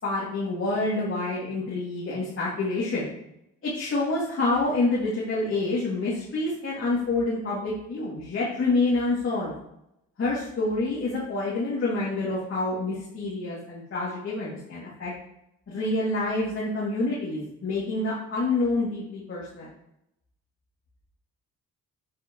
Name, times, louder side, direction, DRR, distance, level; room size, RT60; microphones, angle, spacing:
voice 1, 0.0-3.2 3.6-9.5 10.2-15.1 15.7-19.7, left 2 dB, 45° left, -7 dB, 3.0 m, -27 dB
8.5 x 8.2 x 3.3 m, 0.81 s
cardioid pair, 90°, 30 cm